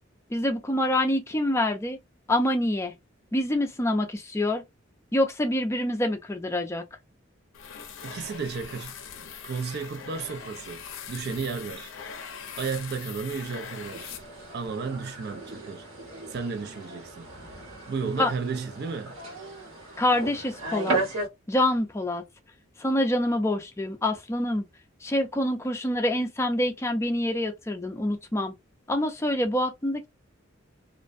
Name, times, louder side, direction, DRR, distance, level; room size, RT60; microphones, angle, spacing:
voice 1, 0.3-2.0 2.3-2.9 3.3-4.6 5.1-6.8 18.2-18.3 20.0-21.0 21.5-22.2 22.8-24.6 25.0-28.5 28.9-30.1, left 1 dB, 15° left, 0.4 m, -26 dB
sound 1, 7.5-14.7, left 7 dB, 75° left, 0.5 m, -41 dB
voice 2, 8.0-8.9 9.4-11.9 12.6-14.1 14.5-15.9 16.3-17.3 17.9-19.2, right 5 dB, 55° right, 0.4 m, -33 dB
sound 2, 13.9-21.3, right 2 dB, 90° right, 1.3 m, -35 dB
2.5 x 2.1 x 2.4 m
head